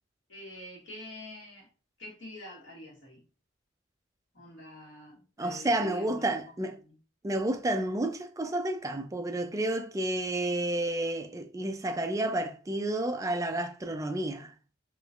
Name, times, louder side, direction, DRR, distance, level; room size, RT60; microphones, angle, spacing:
voice 1, 0.3-1.7 2.0-3.2 4.3-6.9, left 1 dB, 85° left, 1.5 m, -47 dB
voice 2, 5.4-6.8 7.2-14.5, right 1 dB, 20° right, 0.4 m, -30 dB
3.1 x 3.0 x 2.4 m
head